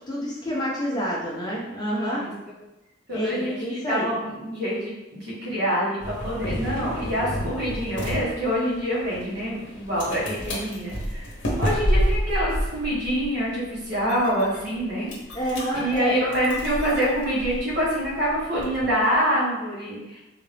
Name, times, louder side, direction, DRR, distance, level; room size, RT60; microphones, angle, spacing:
voice 1, 0.1-2.2 3.1-4.1 15.3-16.2, equal, 20° left, -5 dB, 0.7 m, -28 dB
voice 2, 1.9-2.3 3.1-15.1 15.7-20.2, equal, 60° right, -7 dB, 1.5 m, -26 dB
sound 1, 6.0-19.1, equal, 70° left, 0.9 m, -30 dB
3.7 x 2.6 x 3.4 m, 0.97 s
head